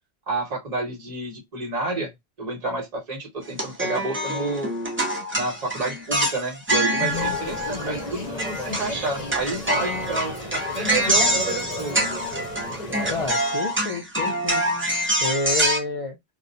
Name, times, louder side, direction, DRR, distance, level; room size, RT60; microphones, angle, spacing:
voice 1, 0.3-2.1 2.4-4.7 5.3-12.0, right 2 dB, 40° right, 1.0 m, -29 dB
sound 1, 3.5-8.1 8.4-15.8, right 1 dB, 20° right, 0.4 m, -25 dB
voice 2, 7.0-7.4 13.1-14.6 15.2-16.2, left 3 dB, 65° left, 0.3 m, -29 dB
sound 2, 7.1-13.3, left 1 dB, 40° left, 0.8 m, -34 dB
2.2 x 2.1 x 2.6 m
omnidirectional pair, 1.1 m